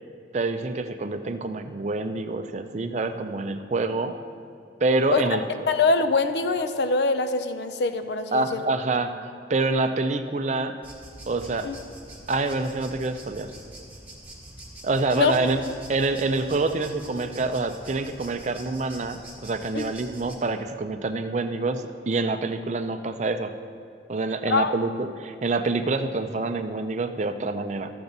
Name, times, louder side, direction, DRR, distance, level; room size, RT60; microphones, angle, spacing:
voice 1, 0.3-4.1 4.8-5.4 8.3-9.1 9.5-10.8 11.3-11.7 12.3-13.5 14.8-15.6 15.9-23.5 24.1-27.9, right 3 dB, 40° right, 8 dB, 0.4 m, -26 dB
voice 2, 5.7-8.7 11.6-11.8 15.2-15.4 19.7-19.9 24.5-24.7, left 3 dB, 65° left, 9 dB, 0.5 m, -24 dB
sound 1, 10.8-20.4, right 1 dB, 10° right, 1.3 m, -45 dB
13.5 x 6.9 x 4.0 m, 2.3 s
head